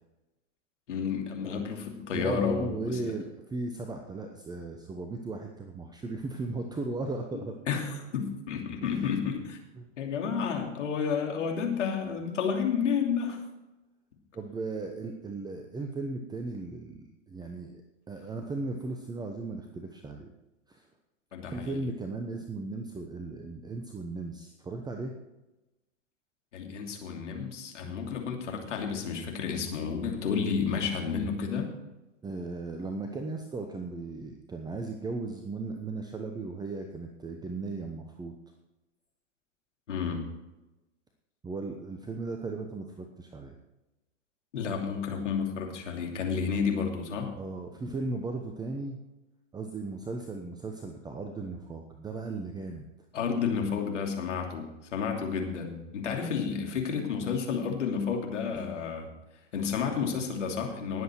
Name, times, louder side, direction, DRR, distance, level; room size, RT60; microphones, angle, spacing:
voice 1, 0.9-3.1 7.7-9.6 10.0-13.4 21.3-21.8 26.5-31.7 39.9-40.3 44.5-47.3 53.1-59.1 59.5-61.0, left 6 dB, 70° left, 2 dB, 2.9 m, -31 dB
voice 2, 2.1-7.6 8.8-9.1 9.8-9.9 14.3-17.8 18.1-20.3 20.7-20.9 21.4-25.1 27.8-28.0 32.2-38.3 41.4-43.5 47.4-49.0 49.5-52.8, right 3 dB, 10° right, 5 dB, 1.0 m, -36 dB
19.0 x 8.0 x 4.5 m, 1.0 s
figure-of-eight pair, 105°, 38 cm